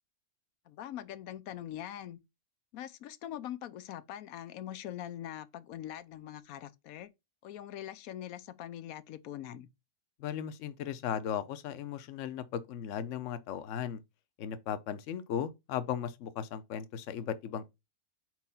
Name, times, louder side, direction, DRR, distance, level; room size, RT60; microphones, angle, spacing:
voice 1, 0.7-2.2 2.7-7.1 7.4-9.7, left 11 dB, 90° left, 1.1 m, -43 dB
voice 2, 10.2-14.0 14.4-17.7, left 9 dB, 65° left, 1.0 m, -36 dB
4.7 x 4.6 x 5.5 m
omnidirectional pair, 1.5 m